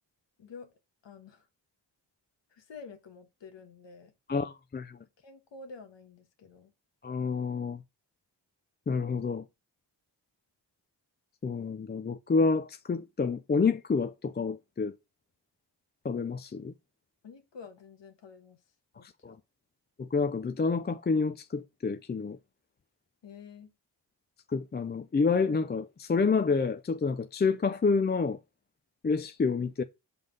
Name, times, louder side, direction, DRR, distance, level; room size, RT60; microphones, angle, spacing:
voice 1, 0.4-0.7 1.0-1.5 2.5-4.1 5.2-6.7 17.2-18.6 18.9-19.4 23.2-23.7, left 5 dB, 90° left, 1.4 m, -49 dB
voice 2, 4.3-5.0 7.0-7.8 8.9-9.5 11.4-14.9 16.0-16.7 19.0-19.4 20.0-22.4 24.5-28.4 29.0-29.8, left 4 dB, 25° left, 0.4 m, -28 dB
5.3 x 3.9 x 5.2 m
cardioid pair, 80°, 42 cm